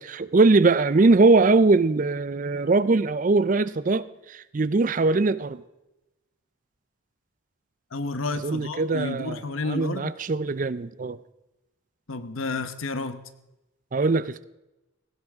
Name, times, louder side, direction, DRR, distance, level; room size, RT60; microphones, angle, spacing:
voice 1, 0.0-5.6 8.4-9.4 9.7-11.2 13.9-14.4, right 3 dB, 40° right, 16 dB, 0.4 m, -21 dB
voice 2, 7.9-10.1 12.1-13.2, left 3 dB, 85° left, 10 dB, 1.0 m, -31 dB
18.0 x 16.0 x 3.6 m, 0.98 s
head